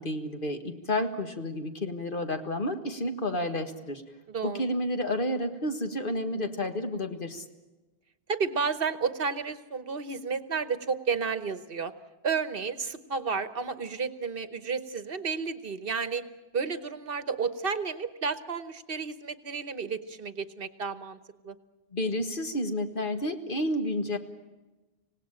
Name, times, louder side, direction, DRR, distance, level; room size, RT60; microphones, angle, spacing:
voice 1, 0.0-4.0 4.4-7.4 21.9-24.2, left 1 dB, 55° left, 6 dB, 1.8 m, -30 dB
voice 2, 4.3-4.6 8.3-11.9 12.2-16.2 16.5-21.2 21.4-21.5, right 5 dB, 60° right, 12 dB, 1.3 m, -31 dB
26.0 x 18.0 x 8.9 m, 1.1 s
omnidirectional pair, 1.1 m